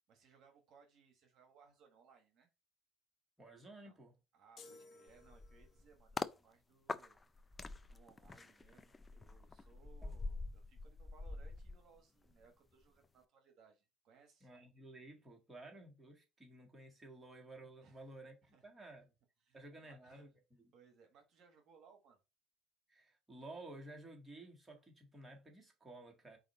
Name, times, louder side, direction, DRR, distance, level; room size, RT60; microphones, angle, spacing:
voice 1, 0.1-2.5 3.7-4.0 4.3-7.5 7.9-14.5 17.8-18.1 18.4-18.7 19.4-20.3 20.7-22.2, right 6 dB, 60° right, 1.1 m, -66 dB
voice 2, 3.4-4.1 10.0-10.1 14.4-19.0 19.5-20.3 22.9-26.4, right 2 dB, 15° right, 1.7 m, -54 dB
sound 1, 4.6-5.9, left 3 dB, 50° left, 0.9 m, -59 dB
sound 2, 5.1-6.4 6.9-12.5 12.8-13.0, left 3 dB, 20° left, 0.4 m, -46 dB
4.8 x 2.6 x 4.2 m
supercardioid pair, 80°, 0 cm